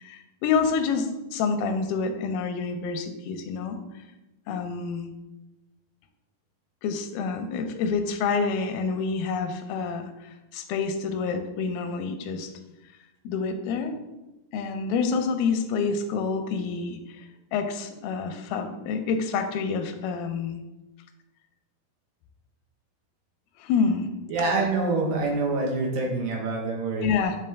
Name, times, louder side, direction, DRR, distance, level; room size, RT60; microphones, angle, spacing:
voice 1, 0.0-3.8 4.5-5.1 6.8-12.5 13.3-13.9 14.5-17.3 17.5-20.6 23.6-24.1 27.0-27.4, left 5 dB, 85° left, 7 dB, 2.4 m, -28 dB
voice 2, 24.3-27.1, right 3 dB, 75° right, -2 dB, 2.8 m, -26 dB
8.4 x 3.7 x 3.4 m, 1.0 s
omnidirectional pair, 4.2 m